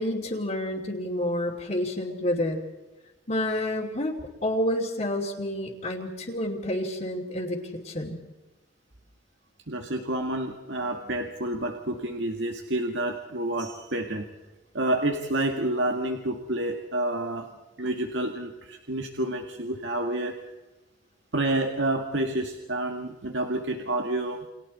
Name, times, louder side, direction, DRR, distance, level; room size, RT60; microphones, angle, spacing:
voice 1, 0.0-2.6 3.3-7.6 7.8-8.2, left 1 dB, 40° left, -4 dB, 2.8 m, -29 dB
voice 2, 9.7-14.3 14.7-17.5 17.8-20.4 21.3-24.5, right 1 dB, 90° right, 3 dB, 1.9 m, -29 dB
30.0 x 26.0 x 4.3 m, 1.0 s
head